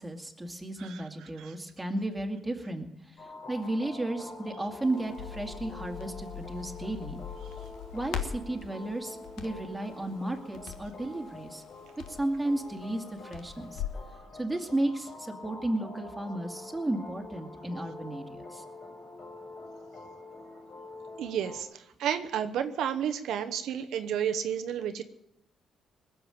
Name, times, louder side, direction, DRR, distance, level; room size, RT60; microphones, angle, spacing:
voice 1, 0.0-2.9 3.5-7.2 7.9-11.6 12.1-13.8 14.4-18.2 18.5-18.6, right 1 dB, 10° right, 3 dB, 2.3 m, -33 dB
sound 1, 3.2-21.6, left 2 dB, 55° left, 5.7 m, -46 dB
Crackle, 4.8-14.1, left 9 dB, 85° left, 1.4 m, -42 dB
voice 2, 21.2-25.0, right 9 dB, 80° right, 7 dB, 0.9 m, -31 dB
20.0 x 7.4 x 8.8 m, 0.82 s
cardioid pair, 90°, 0 cm